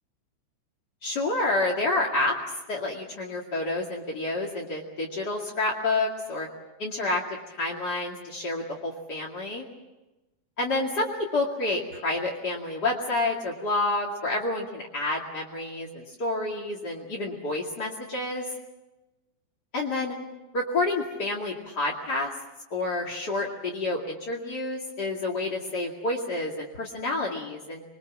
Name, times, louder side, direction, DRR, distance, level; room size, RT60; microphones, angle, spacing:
voice 1, 1.0-2.4 2.7-6.5 6.8-7.2 7.5-9.6 10.6-18.4 19.7-20.1 20.5-22.3 22.7-27.8, left 2 dB, 35° left, -3 dB, 1.9 m, -29 dB
28.0 x 22.0 x 7.4 m, 1.1 s
omnidirectional pair, 5.2 m